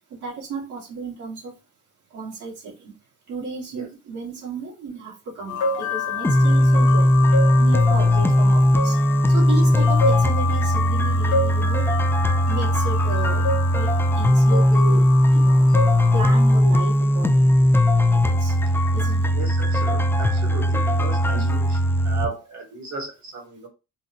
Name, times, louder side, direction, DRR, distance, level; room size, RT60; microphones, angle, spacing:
voice 1, 0.2-1.5 2.1-2.9 3.3-7.1 7.6-9.0 9.3-11.9 12.5-13.9 14.2-15.0 15.3-15.7 16.1-17.6 18.1-18.5 18.9-19.2 21.3-21.6, right 4 dB, 85° right, -5 dB, 2.0 m, -33 dB
sound 1, 5.5-16.6, left 4 dB, 80° left, 0.8 m, -29 dB
sound 2, 6.2-22.3, left 1 dB, 10° left, 0.3 m, -18 dB
voice 2, 19.3-21.5 22.0-23.7, right 4 dB, 70° right, 2 dB, 1.7 m, -35 dB
3.9 x 2.2 x 2.9 m, 0.28 s
cardioid pair, 90°, 30 cm